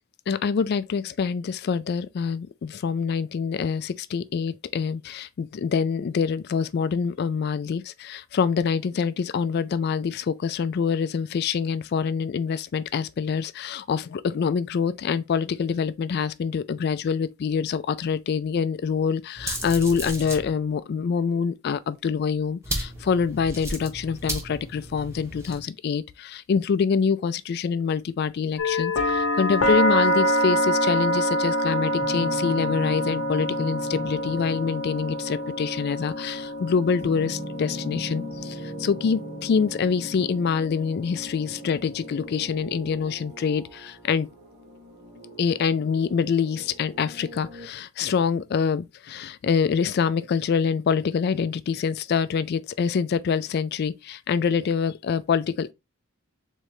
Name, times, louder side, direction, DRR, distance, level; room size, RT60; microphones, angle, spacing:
voice 1, 0.3-44.3 45.4-55.7, left 6 dB, 50° left, 0.3 m, -25 dB
sound 1, 19.4-20.5 22.6-25.6, right 1 dB, 15° right, 0.9 m, -34 dB
sound 2, 28.6-42.5, equal, 70° left, 0.8 m, -27 dB
sound 3, 32.0-47.7, equal, 45° right, 2.0 m, -40 dB
3.7 x 3.2 x 3.0 m
head